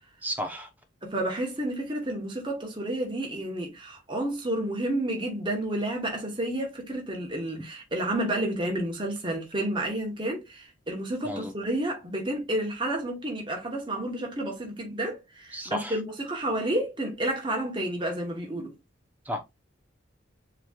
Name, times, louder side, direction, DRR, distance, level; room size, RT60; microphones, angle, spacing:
voice 1, 0.2-0.7 11.2-11.5 15.5-16.0 19.2-19.4, equal, 10° right, 0.7 m, -32 dB
voice 2, 1.0-18.7, right 1 dB, 25° right, 1.1 m, -30 dB
7.2 x 3.1 x 2.3 m
head